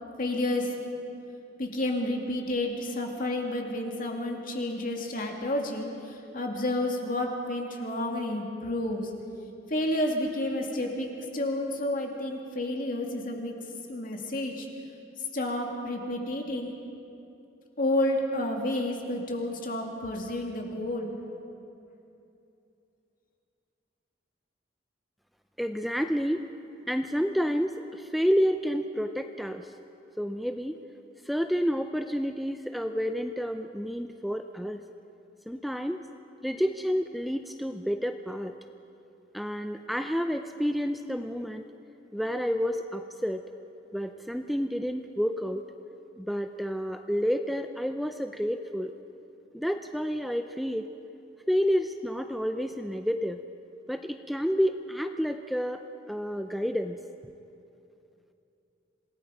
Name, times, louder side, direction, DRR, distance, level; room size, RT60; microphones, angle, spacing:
voice 1, 0.2-0.7 1.6-9.1 9.7-13.5 13.9-14.7 15.3-16.7 17.8-21.2, left 1 dB, 50° left, 1 dB, 2.5 m, -30 dB
voice 2, 25.6-26.5 26.9-29.7 30.2-30.8 31.2-34.8 35.5-36.0 36.4-38.5 39.3-41.6 42.1-43.4 43.9-45.6 46.2-48.9 49.5-50.9 51.5-53.4 53.9-55.8 56.1-57.0, equal, ahead, 7 dB, 0.5 m, -29 dB
27.0 x 18.5 x 5.2 m, 2.7 s
head